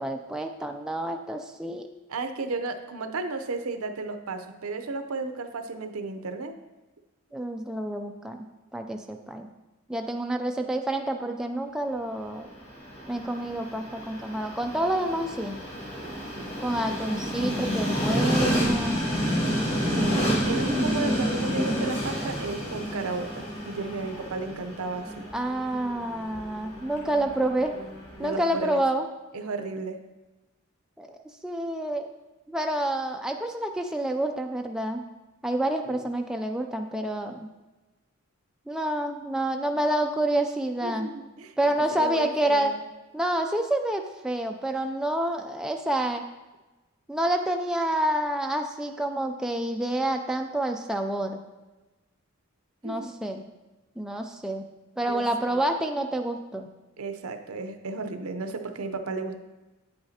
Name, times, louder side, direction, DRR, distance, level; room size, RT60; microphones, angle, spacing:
voice 1, 0.0-1.9 7.3-9.5 9.9-12.5 13.1-15.6 16.6-19.0 25.3-27.7 28.2-29.1 31.0-32.1 32.5-35.0 35.4-37.5 38.7-41.1 41.6-42.7 43.1-46.2 47.1-51.4 52.8-53.4 54.0-54.6 55.0-56.7, right 1 dB, 5° right, 3 dB, 0.3 m, -28 dB
voice 2, 2.1-6.5 16.0-16.1 16.9-17.0 19.8-25.3 28.2-28.8 29.3-30.0 35.8-36.1 40.8-41.5 41.9-42.8 52.8-53.1 55.0-55.6 57.0-59.4, right 3 dB, 85° right, 7 dB, 0.7 m, -34 dB
Train, 12.4-28.5, equal, 30° left, 2.8 m, -30 dB
Bass guitar, 20.0-26.2, left 1 dB, 55° left, 2.1 m, -49 dB
9.2 x 7.9 x 2.8 m, 1.1 s
head